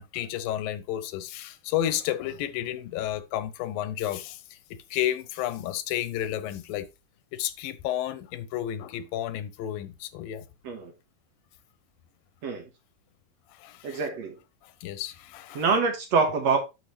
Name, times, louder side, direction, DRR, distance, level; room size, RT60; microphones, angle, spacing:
voice 1, 0.0-4.6 4.9-6.9 7.3-10.5 13.5-14.0 14.6-15.6, left 12 dB, 90° left, 2.5 m, -31 dB
voice 2, 13.8-14.4 15.5-16.6, right 4 dB, 60° right, 2.2 m, -25 dB
11.5 x 5.2 x 3.2 m
omnidirectional pair, 4.0 m